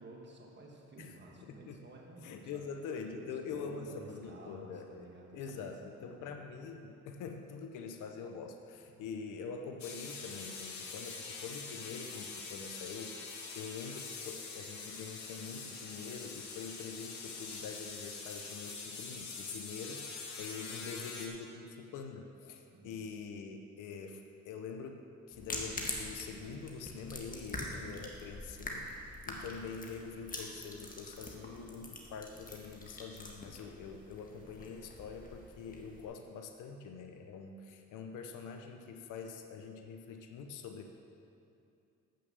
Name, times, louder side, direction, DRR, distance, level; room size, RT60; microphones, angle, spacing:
voice 1, 0.0-2.6 3.2-6.4 8.9-9.1 22.7-23.1 29.3-29.6, right 2 dB, 35° right, 0 dB, 1.3 m, -53 dB
voice 2, 1.4-1.8 2.2-25.0 25.3-28.9 29.3-40.9, left 5 dB, 85° left, 5 dB, 0.7 m, -45 dB
sound 1, 9.8-21.3, left 4 dB, 70° left, 1.3 m, -44 dB
sound 2, 25.3-36.0, left 2 dB, 30° left, 1.5 m, -45 dB
7.9 x 6.5 x 6.9 m, 2.6 s
cardioid pair, 90°, 30 cm